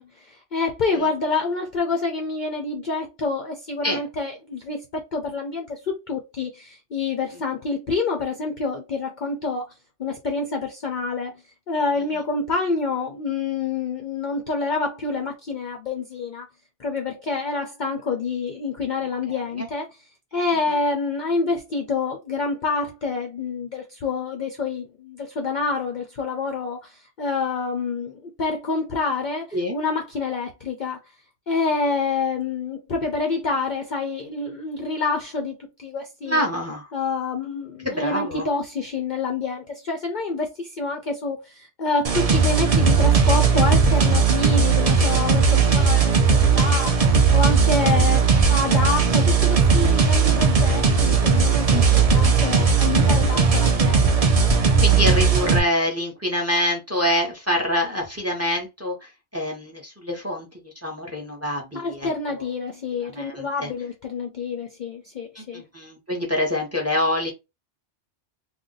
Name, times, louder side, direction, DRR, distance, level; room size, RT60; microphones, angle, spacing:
voice 1, 0.0-9.7 10.0-11.4 11.7-16.5 16.8-19.9 20.3-31.0 31.5-36.5 36.9-46.9 47.3-54.3 61.7-65.6, left 4 dB, 55° left, 0.6 m, -27 dB
voice 2, 19.3-19.7 29.5-29.7 36.2-36.9 37.8-38.5 51.7-52.1 54.8-62.5 63.0-63.7 65.3-67.3, left 1 dB, 15° right, 0.8 m, -26 dB
sound 1, 42.0-55.6, right 5 dB, 40° right, 0.5 m, -18 dB
2.5 x 2.2 x 3.8 m
omnidirectional pair, 1.2 m